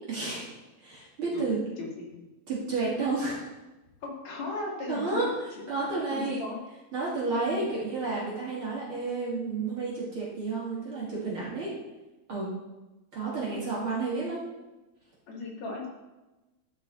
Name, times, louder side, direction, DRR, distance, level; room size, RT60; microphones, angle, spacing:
voice 1, 0.1-0.5 0.8-1.6 2.5-3.4 4.9-6.4 6.9-11.7 12.3-12.5 13.1-14.4, right 3 dB, 35° right, -6 dB, 2.9 m, -31 dB
voice 2, 1.8-2.2 4.0-6.6 7.5-7.6 15.3-15.9, left 3 dB, 50° left, -3 dB, 2.8 m, -37 dB
12.5 x 5.7 x 4.4 m, 1.1 s
omnidirectional pair, 4.6 m